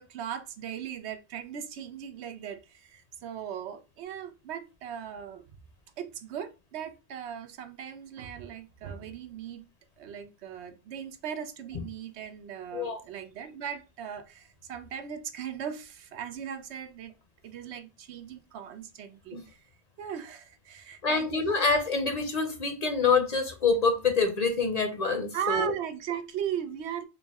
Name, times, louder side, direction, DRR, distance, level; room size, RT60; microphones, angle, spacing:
voice 1, 0.0-5.4 6.0-9.6 10.0-17.1 17.4-19.6 20.0-21.5 25.3-27.0, right 8 dB, 85° right, 0.9 m, -38 dB
voice 2, 21.0-25.7, left 4 dB, 45° left, 0.6 m, -26 dB
4.6 x 2.1 x 3.5 m
omnidirectional pair, 1.1 m